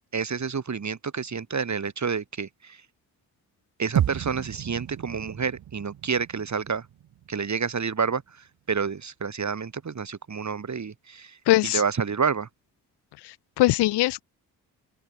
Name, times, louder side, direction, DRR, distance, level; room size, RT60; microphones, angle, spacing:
voice 1, 0.1-2.8 3.8-6.9 7.3-11.4 11.6-12.5, right 6 dB, 45° right, 3.6 m, -29 dB
sound 1, 4.0-8.3, right 11 dB, 65° right, 1.4 m, -32 dB
voice 2, 11.5-11.8 13.2-14.2, left 17 dB, 85° left, 1.3 m, -22 dB
open air
supercardioid pair, 50°, 39 cm